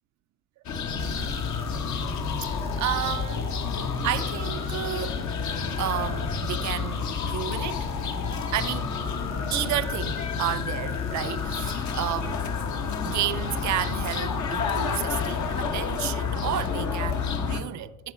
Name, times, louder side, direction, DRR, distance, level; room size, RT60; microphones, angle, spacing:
sound 1, 0.7-17.6, left 5 dB, 70° left, 1.4 m, -30 dB
sound 2, 1.0-15.6, left 7 dB, 45° left, 1.3 m, -37 dB
voice 1, 1.0-3.5 4.0-5.3 5.8-7.9 8.5-8.9 9.5-12.4 13.0-18.1, right 13 dB, 70° right, 0.6 m, -32 dB
13.5 x 8.6 x 4.7 m
cardioid pair, 90°, 30 cm